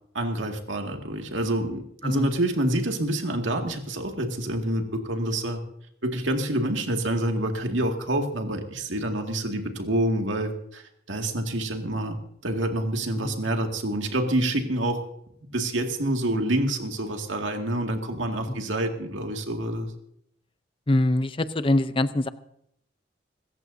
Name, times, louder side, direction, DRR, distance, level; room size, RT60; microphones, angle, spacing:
voice 1, 0.1-5.6 6.0-12.2 12.4-15.0 15.5-19.9, right 1 dB, 90° right, 3 dB, 2.2 m, -27 dB
voice 2, 2.0-2.3 13.2-13.4 18.5-18.6 20.9-22.3, left 1 dB, 30° left, 13 dB, 0.6 m, -24 dB
25.5 x 14.0 x 2.7 m, 0.72 s
head